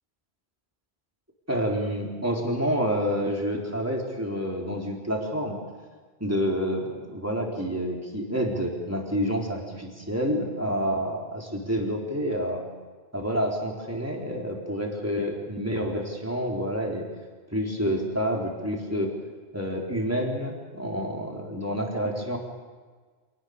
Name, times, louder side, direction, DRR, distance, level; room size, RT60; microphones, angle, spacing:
voice 1, 1.5-5.6 6.2-12.6 13.1-17.0 17.5-19.1 19.5-22.4, equal, 15° right, 0 dB, 4.1 m, -28 dB
27.5 x 18.5 x 6.7 m, 1.4 s
omnidirectional pair, 1.1 m